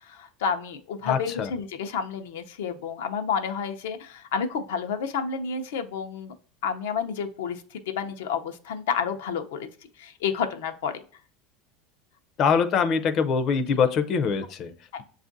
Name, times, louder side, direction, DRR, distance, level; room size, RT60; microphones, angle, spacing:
voice 1, 0.0-6.3 6.6-9.7 10.0-10.9 14.9-15.0, left 6 dB, 90° left, 0.6 m, -30 dB
voice 2, 1.0-1.5 12.4-14.7, left 6 dB, 35° left, 0.5 m, -23 dB
7.2 x 2.4 x 2.6 m
supercardioid pair, 150°, 0 cm